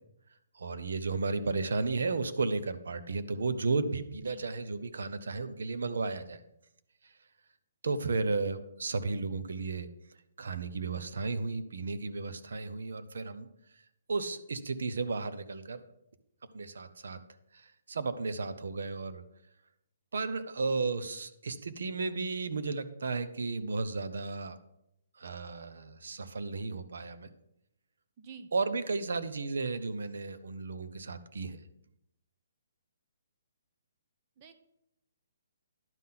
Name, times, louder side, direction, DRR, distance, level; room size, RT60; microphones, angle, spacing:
voice 1, 0.5-6.4 7.0-7.1 7.8-9.9 10.4-13.5 13.7-13.8 14.1-15.8 16.5-17.2 17.5-19.2 20.1-24.6 25.1-27.3 28.5-31.6, right 3 dB, 75° right, 12 dB, 0.8 m, -34 dB
voice 2, 28.2-28.5 34.4-34.5, right 5 dB, 25° right, 9 dB, 0.6 m, -48 dB
11.0 x 3.9 x 5.8 m, 0.81 s
hypercardioid pair, 165°, 0 cm